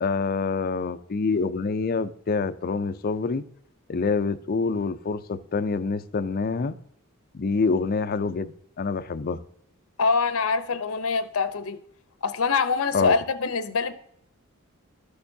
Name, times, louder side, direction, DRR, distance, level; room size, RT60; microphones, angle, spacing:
voice 1, 0.0-3.4 3.9-6.8 7.3-8.5 8.8-9.4 12.9-13.1, left 4 dB, 45° left, 0.4 m, -26 dB
voice 2, 10.0-11.8 12.2-13.9, left 5 dB, 85° left, 0.7 m, -24 dB
12.5 x 6.6 x 2.7 m
head